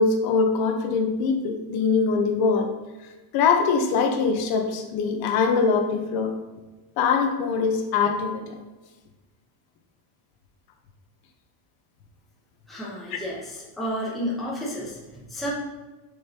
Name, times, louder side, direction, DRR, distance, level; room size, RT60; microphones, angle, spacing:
voice 1, 0.0-2.7 3.3-6.3 7.0-8.6 13.1-13.2, left 5 dB, 50° left, 4 dB, 1.0 m, -23 dB
voice 2, 12.7-15.5, equal, ahead, -7 dB, 1.0 m, -31 dB
6.7 x 5.4 x 2.9 m, 1.2 s
cardioid pair, 165°, 49 cm